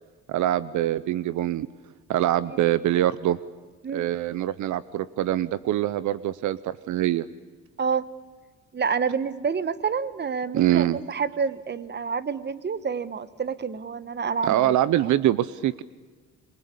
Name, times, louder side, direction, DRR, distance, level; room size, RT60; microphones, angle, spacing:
voice 1, 0.3-1.7 2.1-3.4 3.9-7.3 10.5-11.0 14.4-15.8, right 13 dB, 75° right, 17 dB, 0.8 m, -24 dB
voice 2, 8.7-14.7 15.0-15.1, right 6 dB, 35° right, 14 dB, 1.3 m, -28 dB
27.0 x 23.5 x 8.5 m, 1.4 s
cardioid pair, 90°, 30 cm